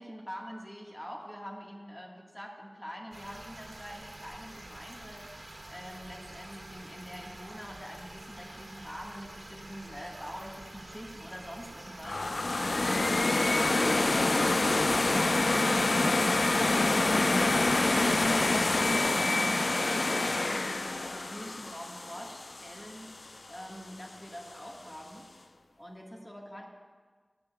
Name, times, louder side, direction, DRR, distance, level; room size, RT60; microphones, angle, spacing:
voice 1, 0.0-5.3 5.7-16.4 16.8-23.2 23.5-25.3 25.8-26.7, equal, 15° left, -1 dB, 1.7 m, -45 dB
sound 1, 3.1-19.1, right 1 dB, 55° right, 1.6 m, -47 dB
sound 2, 12.0-23.0, left 2 dB, 70° left, 0.4 m, -26 dB
19.5 x 9.0 x 2.4 m, 1.5 s
wide cardioid pair, 45°, 0 cm